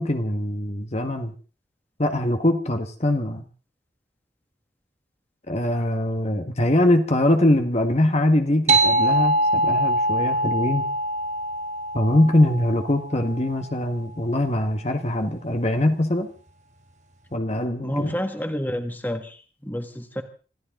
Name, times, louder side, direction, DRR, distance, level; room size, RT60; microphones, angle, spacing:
voice 1, 0.0-1.3 2.0-3.4 5.5-10.8 11.9-16.3 17.3-18.1, left 1 dB, 35° left, 6 dB, 1.5 m, -22 dB
sound 1, 8.7-13.7, right 1 dB, 40° right, 1.5 m, -23 dB
voice 2, 17.8-20.2, equal, 10° left, 7 dB, 1.8 m, -29 dB
26.5 x 14.0 x 3.9 m, 0.37 s
head